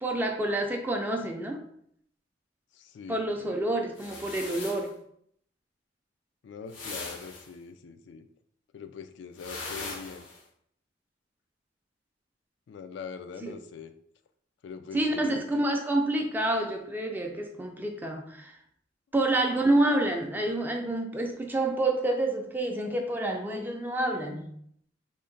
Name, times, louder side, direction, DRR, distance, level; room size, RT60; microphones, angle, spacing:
voice 1, 0.0-1.6 3.1-5.0 13.4-13.5 14.9-18.6 19.1-24.5, right 1 dB, 10° right, 3 dB, 0.4 m, -28 dB
voice 2, 2.7-3.6 6.4-8.3 8.7-10.3 12.7-13.9 14.6-15.6, left 6 dB, 65° left, 9 dB, 0.3 m, -43 dB
sound 1, 4.0-4.9 6.7-7.5 9.4-10.4, left 3 dB, 85° left, 0.8 m, -40 dB
3.6 x 2.1 x 3.8 m, 0.68 s
head